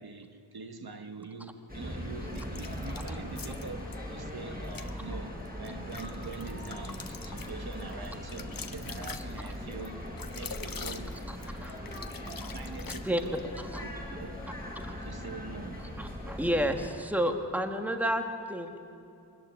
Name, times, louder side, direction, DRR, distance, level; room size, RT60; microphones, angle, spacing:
voice 1, 0.0-3.8 4.1-10.0 10.3-11.8 12.2-13.5 13.8-14.4 15.0-15.9, right 4 dB, 60° right, 6 dB, 1.4 m, -44 dB
sound 1, 1.7-16.9, left 1 dB, 20° right, 7.1 m, -40 dB
sound 2, 2.3-4.0 4.6-4.9 5.4-13.5, left 5 dB, 50° left, 1.1 m, -44 dB
voice 2, 16.0-18.8, equal, 5° right, 5 dB, 1.5 m, -30 dB
23.0 x 14.5 x 9.9 m, 2.7 s
wide cardioid pair, 115°, 42 cm